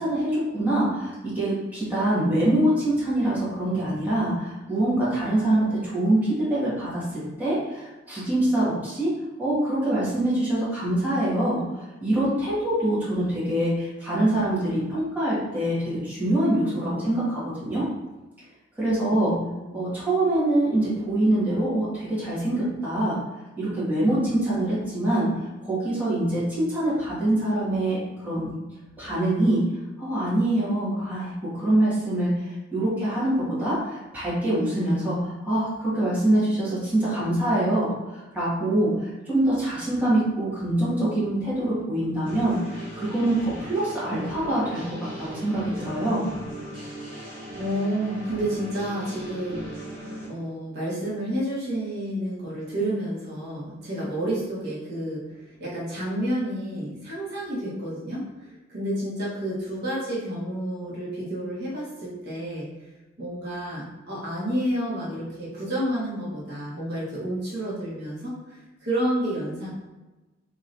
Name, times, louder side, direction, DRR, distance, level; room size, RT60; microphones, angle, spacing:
voice 1, 0.0-9.1 9.4-17.9 18.8-19.3 19.7-23.2 23.6-25.3 25.6-28.5 29.0-29.6 30.0-46.3, right 1 dB, 10° right, -10 dB, 1.3 m, -24 dB
voice 2, 19.1-19.8 47.5-49.9 50.3-62.9 63.2-69.7, right 1 dB, 55° right, -8 dB, 1.1 m, -30 dB
sound 1, 42.3-50.3, right 1 dB, 30° right, 1.4 m, -38 dB
3.1 x 2.8 x 2.5 m, 1.1 s
head